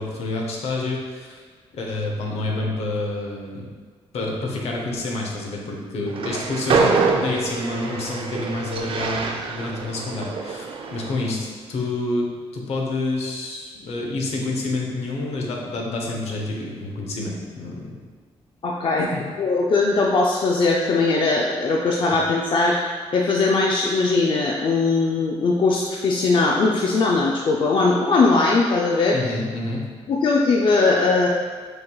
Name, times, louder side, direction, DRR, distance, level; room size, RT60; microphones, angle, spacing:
voice 1, 0.0-1.4 1.7-3.7 4.1-10.6 10.9-12.3 12.5-18.0 19.0-19.3 29.1-29.8, left 2 dB, 70° left, -1 dB, 0.8 m, -28 dB
Train, 6.1-11.3, right 4 dB, 55° right, 0.4 m, -25 dB
voice 2, 18.6-19.1 19.4-22.8 23.1-29.2 30.1-31.3, left 3 dB, 50° left, -1 dB, 0.4 m, -20 dB
6.3 x 3.0 x 2.3 m, 1.5 s
cardioid pair, 90°, 11 cm